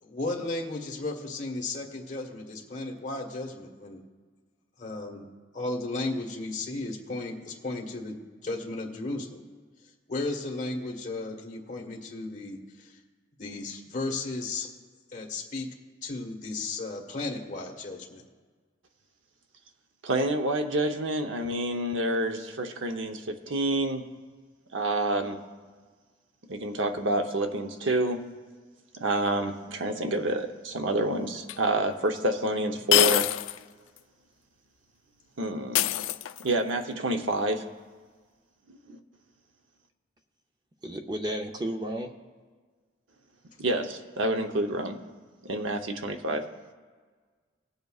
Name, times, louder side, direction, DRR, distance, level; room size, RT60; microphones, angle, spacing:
voice 1, 0.0-4.0 4.8-8.2 8.4-9.4 10.1-13.0 13.4-14.7 15.1-15.7 16.0-18.2, left 2 dB, 40° left, 0 dB, 1.4 m, -34 dB
voice 2, 20.0-24.1 24.7-25.4 26.5-28.2 29.0-33.3 35.4-35.9 36.4-37.7 38.7-39.0 43.6-45.0 45.4-46.5, right 1 dB, 90° right, 5 dB, 0.8 m, -28 dB
sound 1, 31.5-31.6 32.9-33.6 34.0-34.1 35.7-36.6, left 13 dB, 90° left, 0.3 m, -24 dB
voice 3, 40.8-42.1, right 1 dB, 20° right, 4 dB, 0.5 m, -32 dB
19.5 x 8.0 x 2.4 m, 1.5 s
head